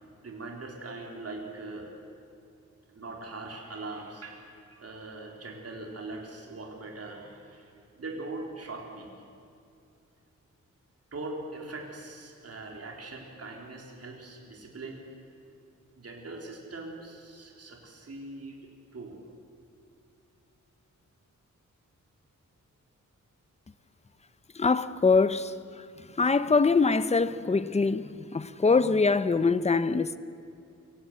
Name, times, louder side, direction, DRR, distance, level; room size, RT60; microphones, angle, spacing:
voice 1, 0.2-1.9 2.9-9.1 11.1-15.0 16.0-19.2, right 2 dB, 50° right, 3.9 m, -41 dB
voice 2, 24.6-25.5 26.2-30.2, left 4 dB, 20° left, 0.7 m, -23 dB
24.5 x 16.0 x 8.3 m
wide cardioid pair, 110°, 31 cm